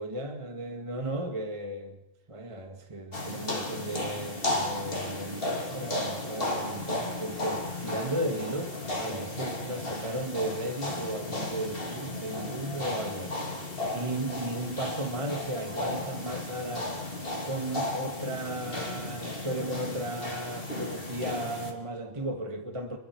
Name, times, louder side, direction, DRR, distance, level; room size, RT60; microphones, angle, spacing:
voice 1, 0.0-2.0 2.3-13.3 13.9-16.9 17.4-23.0, right 1 dB, 15° right, 4 dB, 1.8 m, -35 dB
sound 1, 3.1-21.7, left 2 dB, 25° left, 3.1 m, -34 dB
27.0 x 22.0 x 4.8 m, 0.83 s
omnidirectional pair, 2.3 m